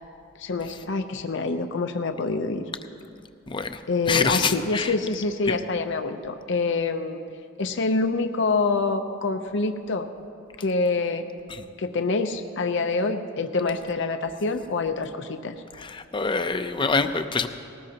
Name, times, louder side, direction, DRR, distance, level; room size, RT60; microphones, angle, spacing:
voice 1, 0.4-2.6 3.8-7.2 7.6-10.1 10.6-11.3 11.8-15.6, left 3 dB, 65° left, 7 dB, 0.7 m, -26 dB
voice 2, 3.5-3.8 4.1-4.9 5.5-5.6 11.5-11.6 15.8-17.5, left 4 dB, 25° left, 9 dB, 0.6 m, -25 dB
19.5 x 18.5 x 2.9 m, 2.5 s
head